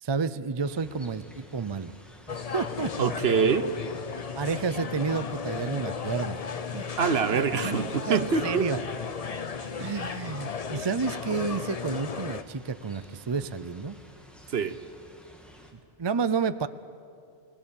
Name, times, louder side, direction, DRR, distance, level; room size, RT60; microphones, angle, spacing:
voice 1, 0.0-1.9 2.3-3.1 4.3-6.4 6.7-6.9 7.6-8.8 9.6-14.0 16.0-16.7, right 5 dB, 35° right, 13 dB, 0.5 m, -30 dB
sound 1, 0.6-15.7, equal, ahead, 2.6 m, -52 dB
sound 2, 2.3-12.4, left 6 dB, 40° left, 0.7 m, -35 dB
voice 2, 3.0-3.7 7.0-8.7 14.5-14.8, right 6 dB, 65° right, 11 dB, 1.1 m, -25 dB
29.5 x 19.0 x 7.1 m, 2.4 s
omnidirectional pair, 1.2 m